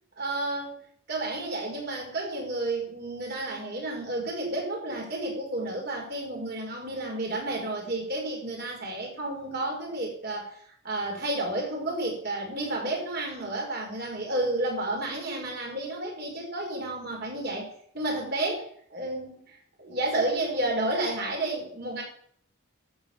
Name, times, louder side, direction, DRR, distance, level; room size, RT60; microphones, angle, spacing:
voice 1, 0.2-0.8 1.1-17.7 17.9-22.0, right 2 dB, 50° right, 0 dB, 5.2 m, -31 dB
12.5 x 8.0 x 7.2 m, 0.62 s
head